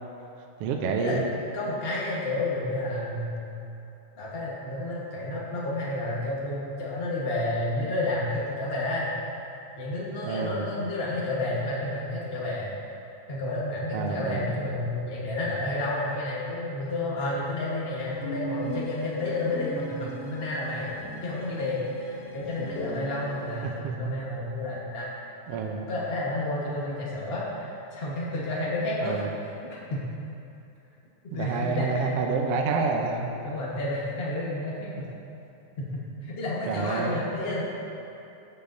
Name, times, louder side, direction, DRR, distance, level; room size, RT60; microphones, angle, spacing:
voice 1, 0.6-1.2 10.2-10.7 13.9-14.5 23.6-24.1 25.5-25.8 29.0-29.3 31.3-33.3 36.7-37.2, right 5 dB, 75° right, 1 dB, 1.4 m, -28 dB
voice 2, 1.5-3.6 4.2-9.1 9.8-12.7 13.3-20.9 21.2-25.1 25.9-30.0 31.2-32.1 33.4-35.1 35.8-37.6, left 2 dB, 50° left, -6 dB, 0.6 m, -31 dB
sound 1, 18.1-23.8, equal, 75° left, 2.1 m, -39 dB
16.5 x 6.8 x 2.7 m, 2.8 s
omnidirectional pair, 3.4 m